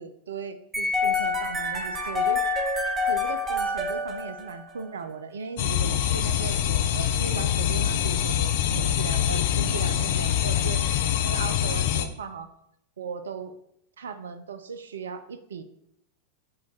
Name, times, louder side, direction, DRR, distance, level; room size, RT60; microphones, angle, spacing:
voice 1, 0.0-2.4 3.1-10.8 11.2-12.5 13.0-13.5 14.0-15.6, right 5 dB, 65° right, 10 dB, 0.3 m, -37 dB
sound 1, 0.7-4.8, left 3 dB, 15° right, 0.6 m, -27 dB
sound 2, 5.6-12.1, left 10 dB, 50° left, 0.3 m, -24 dB
4.2 x 2.3 x 4.5 m, 0.75 s
figure-of-eight pair, 90°, 0 cm